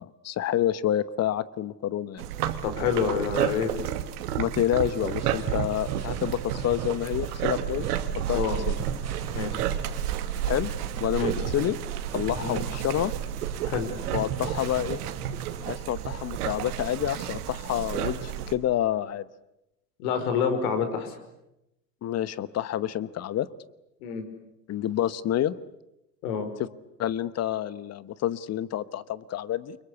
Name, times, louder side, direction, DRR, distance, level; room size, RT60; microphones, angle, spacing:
voice 1, 0.0-2.2 4.4-8.0 8.3-8.4 8.7-8.8 10.5-10.7 11.0-11.8 12.1-13.1 14.1-15.0 15.6-19.2 22.0-23.5 24.7-25.5 27.0-29.8, left 11 dB, 30° left, 18 dB, 1.1 m, -28 dB
sound 1, 2.2-18.5, right 10 dB, 65° right, 2.4 m, -31 dB
voice 2, 2.6-3.7 8.3-8.6 9.3-9.6 11.2-11.3 12.4-12.6 13.7-13.9 20.0-21.1 24.0-24.2 26.2-26.5, left 7 dB, 60° left, 8 dB, 5.5 m, -27 dB
sound 2, 4.7-16.0 16.6-18.0, right 7 dB, 30° right, 4.5 m, -41 dB
29.5 x 24.5 x 8.3 m, 0.89 s
figure-of-eight pair, 80°, 49 cm